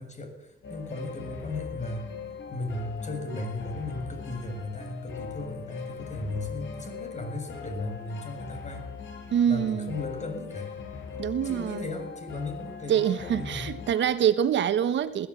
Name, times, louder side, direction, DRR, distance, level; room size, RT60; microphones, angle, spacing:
voice 1, 0.0-2.1 2.5-8.9 9.5-10.8 11.4-13.7, left 2 dB, 35° left, 7.1 m, -36 dB
sound 1, 0.6-14.0, left 6 dB, 70° left, 6.9 m, -41 dB
voice 2, 9.3-10.0 11.2-11.9 12.9-15.3, right 9 dB, 65° right, 1.4 m, -25 dB
20.5 x 15.0 x 8.6 m
cardioid pair, 90°, 20 cm